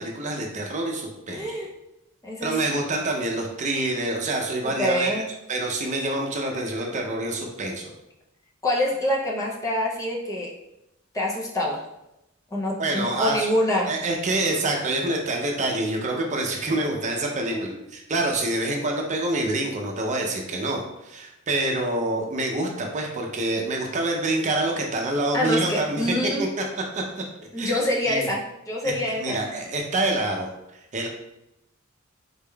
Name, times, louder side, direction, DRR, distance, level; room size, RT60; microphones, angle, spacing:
voice 1, 0.0-1.5 2.4-5.2 5.5-7.9 12.8-13.5 13.9-26.5 26.9-27.2 27.6-27.7 28.1-28.3 28.8-30.5 30.9-31.1, right 2 dB, 35° right, 1 dB, 0.6 m, -26 dB
voice 2, 1.3-1.7 2.2-2.6 4.6-5.3 8.6-10.5 11.1-11.9 12.5-14.0 17.5-17.7 25.3-26.5 27.5-29.4, left 1 dB, 15° left, -3 dB, 0.5 m, -26 dB
4.2 x 3.5 x 2.3 m, 0.87 s
head